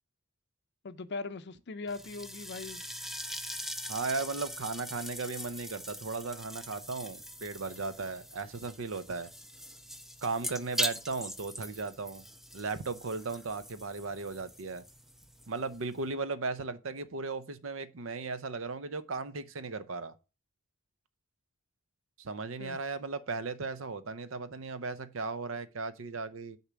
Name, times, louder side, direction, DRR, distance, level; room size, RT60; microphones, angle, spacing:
voice 1, 0.8-2.8 22.6-22.8, left 3 dB, 60° left, 0.6 m, -40 dB
sound 1, 1.9-16.1, equal, ahead, 0.5 m, -42 dB
voice 2, 3.9-9.3 10.2-12.2 12.5-14.8 15.5-20.1 22.2-26.6, right 4 dB, 75° right, 0.7 m, -36 dB
6.8 x 4.4 x 6.1 m
head